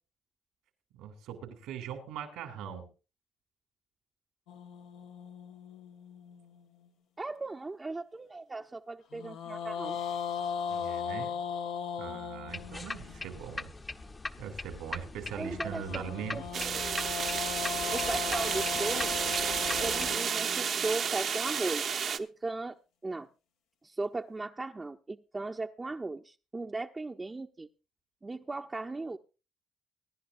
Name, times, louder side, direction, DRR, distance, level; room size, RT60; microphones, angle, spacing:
voice 1, 0.9-2.8 10.7-11.3 12.0-13.7 14.4-16.4, right 8 dB, 85° right, 7 dB, 2.7 m, -41 dB
sound 1, 4.5-6.9 9.1-13.3 15.4-21.6, left 7 dB, 85° left, 1.1 m, -38 dB
voice 2, 7.2-10.0 15.3-17.1 17.9-19.1 19.8-22.8 23.0-23.3 23.8-27.7 28.2-29.2, right 3 dB, 25° right, 1 dB, 0.7 m, -37 dB
sound 2, 12.5-20.2, left 3 dB, 30° left, 0.8 m, -41 dB
sound 3, 16.5-22.2, right 7 dB, 60° right, 0.8 m, -31 dB
23.5 x 10.5 x 2.5 m, 0.31 s
supercardioid pair, 65°, 0 cm